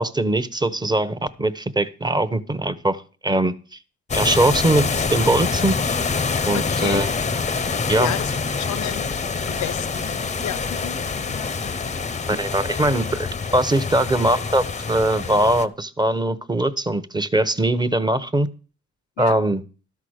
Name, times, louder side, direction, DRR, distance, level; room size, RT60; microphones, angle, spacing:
voice 1, 0.0-3.5 4.1-5.8 6.5-7.1 7.9-8.1 12.3-18.5 19.2-19.6, right 1 dB, 15° right, 1.0 m, -21 dB
sound 1, 4.1-15.7, left 5 dB, 25° left, 0.8 m, -26 dB
voice 2, 6.5-7.0 7.7-8.3 8.6-9.1 9.5-11.0 11.3-11.5 13.8-13.9 19.2-19.4, left 13 dB, 70° left, 0.7 m, -31 dB
12.5 x 5.9 x 6.5 m
cardioid pair, 90°, 30 cm